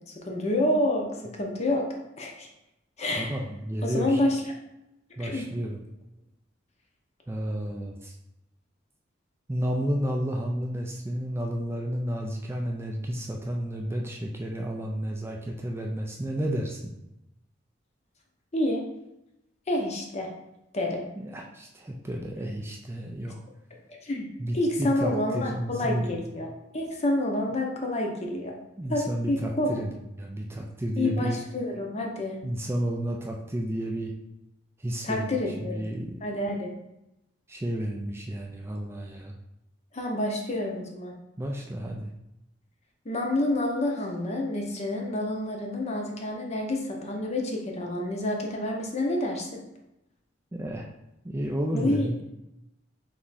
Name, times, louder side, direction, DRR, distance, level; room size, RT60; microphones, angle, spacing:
voice 1, 0.3-1.9 2.2-2.5 3.0-3.4 3.8-4.4 5.2-5.4 18.5-18.8 19.7-20.3 20.7-21.0 24.0-24.3 24.5-26.5 26.7-28.6 28.9-29.8 31.0-32.4 35.0-35.8 36.2-36.7 39.9-41.1 43.1-49.6 51.7-52.1, left 1 dB, 35° left, 1 dB, 0.7 m, -28 dB
voice 2, 3.2-4.2 5.2-5.8 7.3-8.2 9.5-16.9 21.2-23.4 24.4-26.2 28.8-31.4 32.4-34.1 34.8-36.1 37.5-39.3 41.4-42.1 50.5-50.9 51.2-52.2, equal, 15° right, 0 dB, 0.3 m, -31 dB
3.4 x 3.0 x 4.1 m, 0.89 s
head